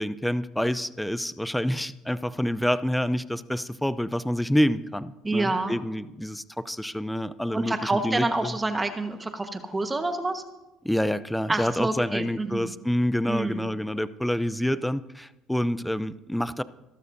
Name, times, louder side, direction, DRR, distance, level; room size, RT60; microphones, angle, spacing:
voice 1, 0.0-8.6 10.8-16.6, equal, 5° left, 16 dB, 0.5 m, -27 dB
voice 2, 5.2-5.8 7.5-10.4 11.5-12.7 13.3-13.7, right 2 dB, 20° right, 7 dB, 1.3 m, -28 dB
23.0 x 12.5 x 2.7 m, 0.99 s
hypercardioid pair, 70°, 0 cm